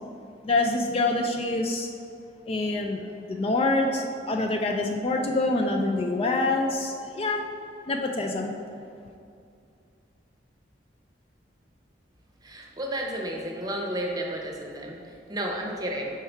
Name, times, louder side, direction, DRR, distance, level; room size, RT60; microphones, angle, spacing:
voice 1, 0.4-1.9 2.5-7.5 7.9-8.5, left 2 dB, 35° left, 3 dB, 0.4 m, -26 dB
voice 2, 12.4-16.1, right 1 dB, 20° right, 0 dB, 0.8 m, -32 dB
5.7 x 4.6 x 4.5 m, 2.4 s
head